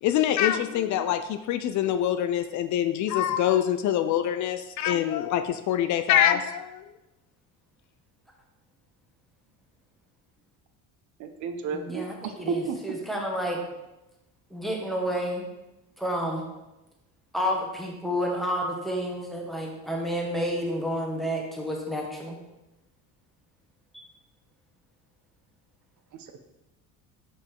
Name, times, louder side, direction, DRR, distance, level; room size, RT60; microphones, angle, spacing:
voice 1, 0.0-6.9, left 10 dB, 55° left, 10 dB, 0.4 m, -25 dB
voice 2, 11.2-12.8, right 6 dB, 55° right, 8 dB, 0.7 m, -32 dB
voice 3, 11.7-13.6 14.5-15.4 16.0-16.4 17.3-22.4 23.9-24.0, equal, ahead, -1 dB, 1.3 m, -30 dB
5.4 x 5.1 x 3.7 m, 0.98 s
cardioid pair, 100°, 35 cm